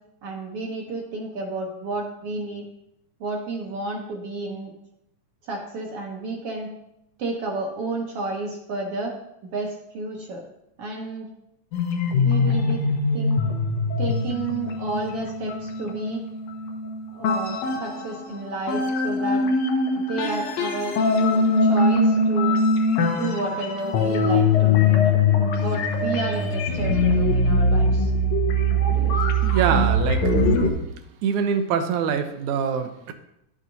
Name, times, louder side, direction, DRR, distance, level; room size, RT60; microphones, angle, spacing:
voice 1, 0.2-2.6 3.2-4.7 5.4-6.7 7.2-9.2 9.5-10.4 10.8-11.3 12.0-12.8 13.1-13.4 14.0-16.2 17.1-19.4 19.9-21.1 21.6-22.6 23.1-25.1 25.4-28.1 28.9-29.3, right 3 dB, 65° right, 0 dB, 1.7 m, -31 dB
sound 1, 11.7-18.3 18.7-30.7, left 2 dB, 75° left, 2.2 m, -22 dB
voice 2, 29.4-30.2 31.2-33.1, right 7 dB, 85° right, 8 dB, 2.1 m, -24 dB
11.0 x 7.5 x 2.7 m, 0.82 s
omnidirectional pair, 3.4 m